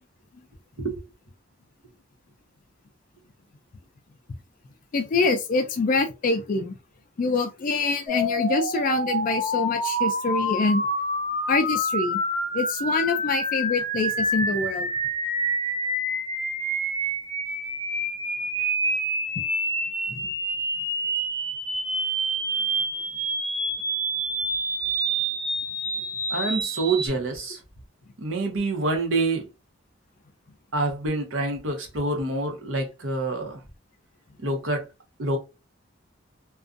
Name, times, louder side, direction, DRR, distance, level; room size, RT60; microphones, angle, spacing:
voice 1, 4.9-6.8 7.2-10.9 11.5-12.2 12.5-14.9 19.4-19.5, left 3 dB, 40° left, 0.3 m, -25 dB
sound 1, 8.1-27.1, right 1 dB, 40° right, 1.3 m, -27 dB
voice 2, 26.3-27.6 28.2-29.4 30.7-33.6 34.4-34.8 35.2-35.4, right 2 dB, 80° right, 0.9 m, -26 dB
2.5 x 2.3 x 2.4 m
head